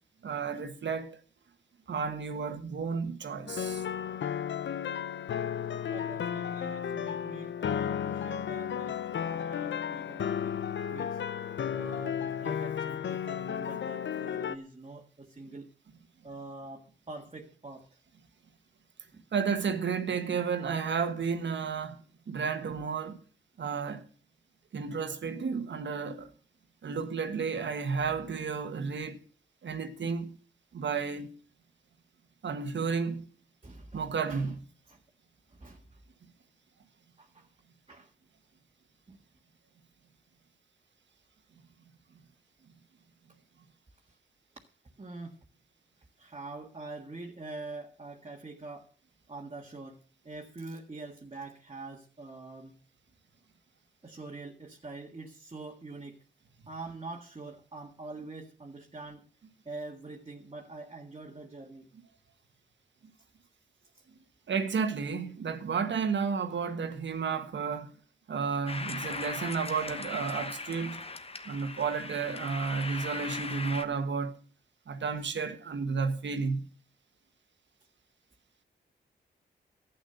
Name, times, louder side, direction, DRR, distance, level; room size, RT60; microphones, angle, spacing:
voice 1, 0.2-1.2 1.9-3.8 19.3-23.2 23.6-24.0 24.7-26.3 26.8-29.2 29.6-30.3 30.7-31.3 32.4-33.3 33.9-34.5 64.5-67.9 68.3-71.0 71.4-74.3 74.9-76.6, right 5 dB, 70° right, 1.4 m, -32 dB
sound 1, 3.5-14.6, left 8 dB, 75° left, 0.7 m, -33 dB
voice 2, 5.9-10.6 10.9-11.2 11.7-15.7 16.2-17.9 19.1-19.2 28.0-28.1 33.6-34.5 34.9-35.0 35.5-36.0 37.2-37.5 37.9-38.1 39.1-39.2 45.0-45.4 46.2-48.9 49.3-52.7 54.0-56.2 56.7-59.3 59.6-61.9, right 3 dB, 30° right, 1.6 m, -45 dB
sound 2, 68.7-73.8, left 3 dB, 30° left, 1.1 m, -39 dB
12.0 x 8.5 x 6.8 m
cardioid pair, 65°, 19 cm